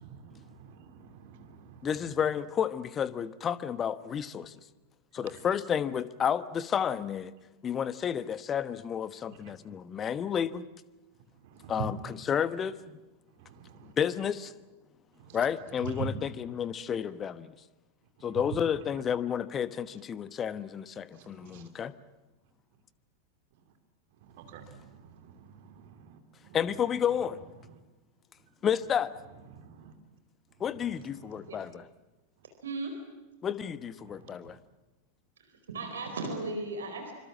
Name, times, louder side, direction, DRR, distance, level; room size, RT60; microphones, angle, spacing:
voice 1, 0.0-2.1 5.2-5.5 9.3-9.6 11.4-12.1 13.3-13.9 15.1-15.5 15.8-16.3 18.2-18.8 21.1-21.7 23.5-23.6 24.2-26.6 27.6-27.8 29.5-29.9 30.5-31.7 34.0-34.6, right 5 dB, 50° right, 7 dB, 2.8 m, -45 dB
voice 2, 1.8-4.5 5.1-7.3 7.6-10.6 11.7-12.0 12.3-12.8 14.0-14.5 15.3-17.5 18.2-21.9 26.5-27.4 28.6-29.1 30.6-31.8 33.4-34.6, left 8 dB, 25° left, 16 dB, 1.1 m, -31 dB
voice 3, 32.6-33.0 35.4-37.1, right 2 dB, 65° right, 5 dB, 4.5 m, -36 dB
26.0 x 26.0 x 7.4 m, 1.1 s
figure-of-eight pair, 90°, 0 cm